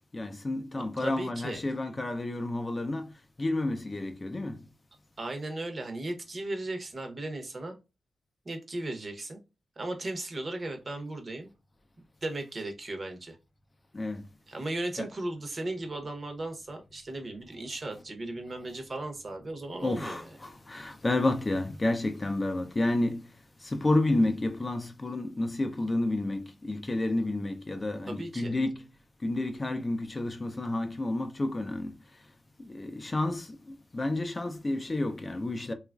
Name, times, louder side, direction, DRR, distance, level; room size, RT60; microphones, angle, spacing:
voice 1, 0.1-3.1 3.4-4.6 13.9-14.2 15.0-15.1 19.8-23.2 23.6-28.8 29.2-31.9 32.7-33.5 33.9-35.7, left 2 dB, 30° left, 0.4 m, -30 dB
voice 2, 1.0-1.6 5.2-7.7 8.4-9.4 9.8-11.5 12.2-13.4 14.5-20.3 28.1-28.6, right 2 dB, 40° right, 0.7 m, -36 dB
2.9 x 2.4 x 2.2 m
cardioid pair, 85°, 0 cm